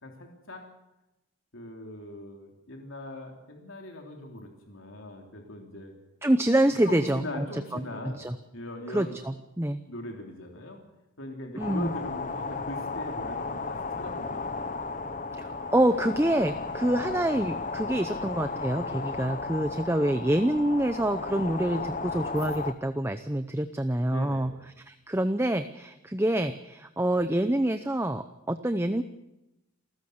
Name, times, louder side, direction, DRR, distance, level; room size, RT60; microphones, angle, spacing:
voice 1, 0.0-0.6 1.5-5.9 6.8-8.2 8.5-9.2 9.8-10.8 11.2-14.7 16.7-16.9 24.0-24.7, left 1 dB, 70° left, 2 dB, 3.2 m, -40 dB
voice 2, 6.2-7.2 7.5-7.8 8.2-8.4 8.9-9.8 11.5-11.9 15.3-24.5 24.9-29.0, right 1 dB, 10° right, 9 dB, 0.7 m, -26 dB
sound 1, 11.6-22.7, left 4 dB, 35° left, 1.0 m, -34 dB
28.0 x 14.5 x 8.0 m, 0.93 s
head